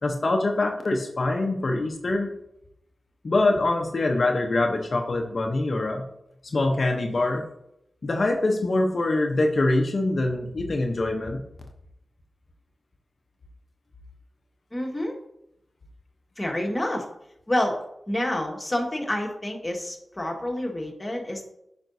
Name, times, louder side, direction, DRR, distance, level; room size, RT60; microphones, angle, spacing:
voice 1, 0.0-2.4 3.2-6.1 6.4-7.4 8.0-11.4, left 2 dB, 60° left, 3 dB, 0.9 m, -24 dB
voice 2, 14.7-15.1 16.4-17.1 17.5-17.8 18.1-21.5, left 1 dB, 25° left, 1 dB, 1.7 m, -28 dB
8.8 x 5.2 x 2.7 m, 0.80 s
cardioid pair, 45°, 0 cm